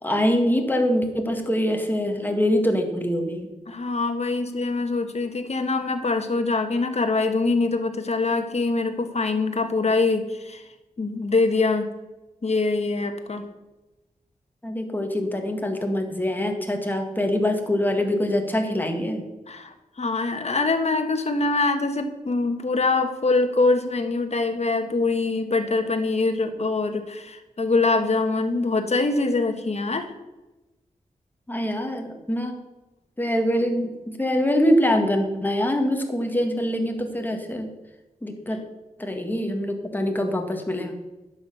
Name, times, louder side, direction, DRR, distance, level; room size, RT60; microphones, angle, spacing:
voice 1, 0.0-3.5 14.6-19.2 31.5-32.6 33.2-37.7 38.2-38.6 39.0-41.0, equal, 15° left, 4 dB, 1.8 m, -24 dB
voice 2, 3.7-10.6 11.0-11.9 12.4-13.4 19.5-30.1, left 3 dB, 50° left, 7 dB, 1.4 m, -24 dB
10.5 x 7.5 x 6.8 m, 1.1 s
wide cardioid pair, 95°, 15 cm